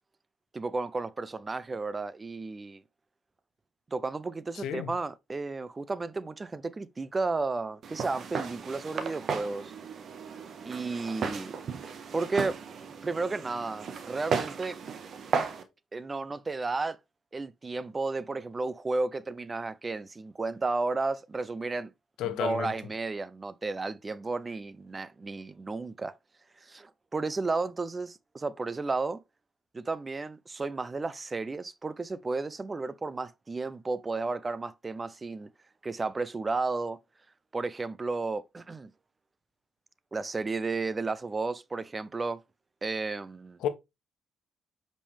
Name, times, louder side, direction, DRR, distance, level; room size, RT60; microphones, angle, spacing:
voice 1, 0.5-2.8 3.9-9.7 10.6-11.5 12.1-12.6 13.0-14.8 15.9-17.0 17.3-21.9 22.2-26.1 26.6-29.2 29.7-35.5 35.8-37.0 37.5-38.9 40.1-42.4 42.8-43.6, right 3 dB, 25° right, 0.6 m, -33 dB
voice 2, 4.6-4.9 22.2-22.7 43.6-43.7, left 10 dB, 85° left, 1.1 m, -31 dB
Walk footsteps, 7.8-15.6, right 6 dB, 60° right, 1.4 m, -35 dB
8.5 x 5.3 x 3.4 m
cardioid pair, 90°, 0 cm